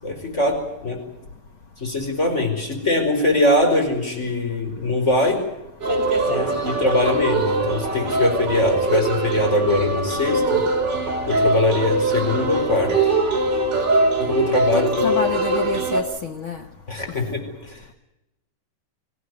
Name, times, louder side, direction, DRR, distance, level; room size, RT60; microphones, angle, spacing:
voice 1, 0.0-1.0 1.8-5.4 6.3-10.6 11.2-13.1 14.2-14.9 16.9-17.8, left 2 dB, 20° left, 4 dB, 5.1 m, -22 dB
sound 1, 5.8-16.0, right 2 dB, 30° right, 4.7 m, -22 dB
voice 2, 14.7-16.6, left 5 dB, 80° left, 8 dB, 1.1 m, -27 dB
25.0 x 16.5 x 9.6 m, 0.93 s
omnidirectional pair, 4.0 m